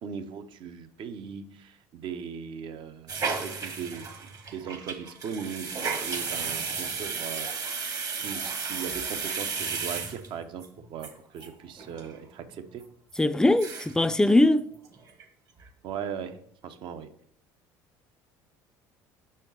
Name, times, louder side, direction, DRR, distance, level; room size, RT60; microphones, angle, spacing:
voice 1, 0.0-7.5 8.0-12.8 15.8-17.1, right 7 dB, 60° right, 0.8 m, -39 dB
sound 1, 3.1-10.7 11.0-11.1 11.4-11.5 11.8-12.1 12.5-12.6 13.1-13.2 13.5-14.0 14.3-14.4 14.7-15.2 15.6-15.7, right 5 dB, 40° right, 1.2 m, -34 dB
voice 2, 13.2-14.7, left 2 dB, 5° left, 0.4 m, -21 dB
6.1 x 4.3 x 5.5 m
supercardioid pair, 80°, 9 cm